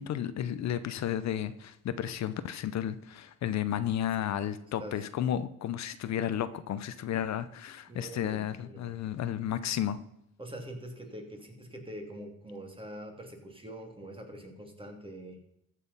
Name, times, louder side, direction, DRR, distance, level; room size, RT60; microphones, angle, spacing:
voice 1, 0.0-10.0, left 10 dB, 65° left, 0.7 m, -33 dB
voice 2, 4.6-5.0 7.9-8.9 10.4-15.4, right 1 dB, 15° right, 2.7 m, -44 dB
14.0 x 6.4 x 5.5 m
cardioid pair, 90°, 30 cm